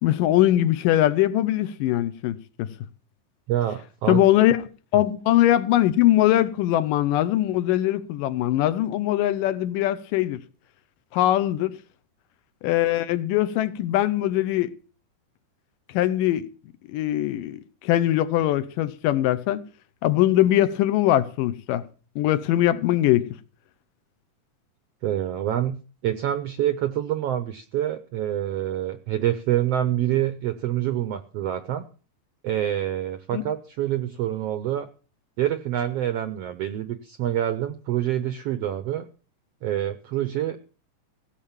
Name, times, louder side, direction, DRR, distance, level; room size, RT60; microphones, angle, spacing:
voice 1, 0.0-2.7 4.1-10.4 11.1-11.8 12.6-14.7 15.9-16.5 16.9-19.6 20.0-21.8 22.2-23.3 33.3-33.4, left 13 dB, 85° left, 2.5 m, -21 dB
voice 2, 3.5-4.2 25.0-31.8 32.4-34.9 35.4-39.1 39.6-40.6, right 12 dB, 80° right, 1.4 m, -26 dB
16.5 x 6.6 x 7.3 m
omnidirectional pair, 3.8 m